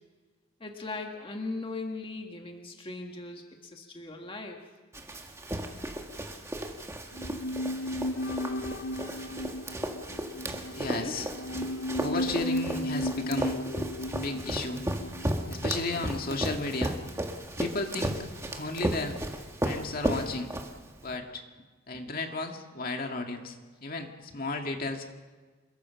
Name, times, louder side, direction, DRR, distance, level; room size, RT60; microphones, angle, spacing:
voice 1, 0.6-4.6 10.9-11.2, left 2 dB, 25° left, 2 dB, 1.8 m, -39 dB
Run, 4.9-21.1, right 1 dB, 15° right, 1.7 m, -35 dB
sound 1, 7.1-16.5 16.7-16.8, left 1 dB, 70° left, 0.6 m, -35 dB
voice 2, 10.8-11.3 12.0-13.6 14.1-14.8 15.5-17.0 17.6-18.2 18.5-19.2 19.6-20.5 21.0-21.4 21.9-25.1, left 2 dB, 45° left, 4 dB, 2.0 m, -34 dB
27.5 x 22.0 x 5.8 m, 1.4 s
head